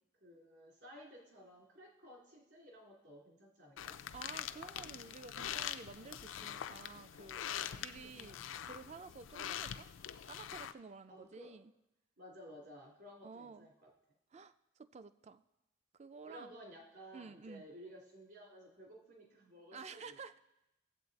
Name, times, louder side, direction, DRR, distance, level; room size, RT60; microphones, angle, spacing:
voice 1, 0.2-4.0 7.9-8.5 11.1-11.6 12.2-13.9 16.2-20.4, equal, 60° right, -3 dB, 2.6 m, -55 dB
sound 1, 3.8-10.7, left 10 dB, 80° left, 0.4 m, -44 dB
voice 2, 4.1-7.4 7.8-9.9 10.3-11.7 13.2-13.7 14.3-15.4 16.0-16.6 17.1-17.6 19.7-20.4, right 4 dB, 35° right, 13 dB, 0.3 m, -52 dB
16.5 x 7.7 x 4.0 m, 0.92 s
head